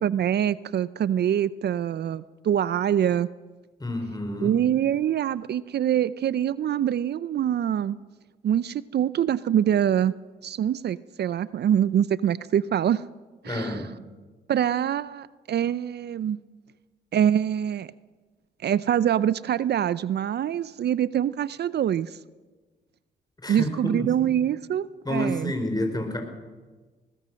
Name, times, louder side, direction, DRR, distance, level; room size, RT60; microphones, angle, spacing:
voice 1, 0.0-3.3 4.4-8.0 8.4-10.1 10.4-13.0 13.4-13.8 14.5-16.4 17.1-17.9 18.6-22.2 23.5-25.5, right 10 dB, 60° right, 17 dB, 0.5 m, -24 dB
voice 2, 3.8-4.5 13.4-13.9 23.4-24.0 25.0-26.2, left 1 dB, 20° left, 5 dB, 5.0 m, -29 dB
21.0 x 19.5 x 6.4 m, 1.3 s
cardioid pair, 65°, 19 cm